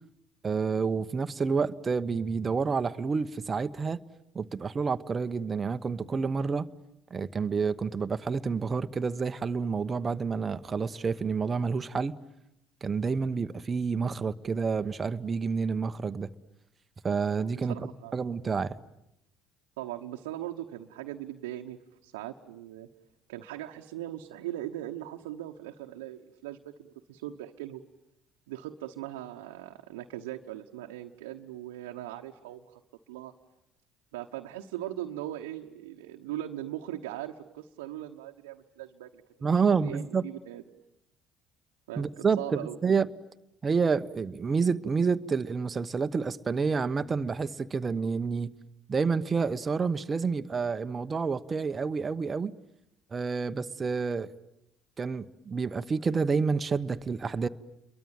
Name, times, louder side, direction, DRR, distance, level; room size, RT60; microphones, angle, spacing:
voice 1, 0.4-4.0 4.3-6.7 7.1-12.1 12.8-16.3 17.0-17.8 18.1-18.8 39.4-40.2 42.0-43.1 43.6-48.5 48.9-52.6 53.1-54.3 55.0-57.5, right 5 dB, 35° right, 1.0 m, -29 dB
voice 2, 17.6-18.1 19.8-22.9 23.3-27.8 28.5-32.8 33.1-33.3 34.1-40.6 41.9-42.1 42.4-42.8, right 13 dB, 80° right, 1.2 m, -40 dB
29.0 x 23.0 x 9.0 m
hypercardioid pair, 55°, 0 cm